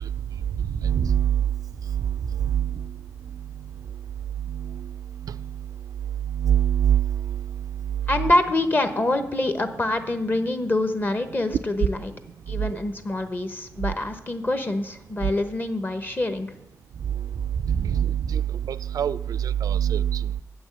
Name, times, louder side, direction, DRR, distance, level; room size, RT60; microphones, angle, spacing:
voice 1, 0.8-1.4 2.5-2.7 6.4-7.1 17.7-18.4 18.9-19.2 19.6-20.2, right 9 dB, 85° right, 0.4 m, -22 dB
voice 2, 8.1-12.1 12.5-16.5, left 2 dB, 30° left, 1.0 m, -25 dB
8.1 x 6.2 x 7.8 m
cardioid pair, 85°, 6 cm